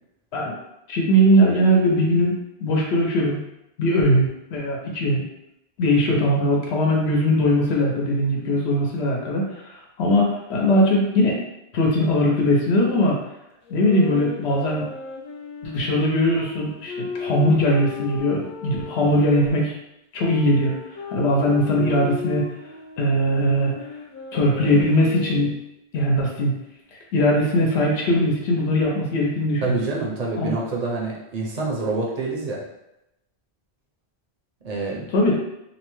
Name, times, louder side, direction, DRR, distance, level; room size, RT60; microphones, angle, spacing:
voice 1, 0.9-2.3 2.6-3.4 3.8-5.2 5.8-11.4 11.7-13.2 13.7-14.9 15.6-19.7 20.1-20.7 21.1-22.5 23.0-23.8 24.3-25.6 25.9-26.5 27.1-29.8 30.4-30.5 35.1-35.3, equal, 85° left, -2 dB, 0.9 m, -20 dB
sound 1, 13.7-19.5 20.2-25.7, left 5 dB, 55° left, 0.6 m, -36 dB
voice 2, 29.6-32.6 34.6-35.0, right 3 dB, 45° right, -2 dB, 0.6 m, -27 dB
2.7 x 2.1 x 3.0 m, 0.87 s
omnidirectional pair, 1.1 m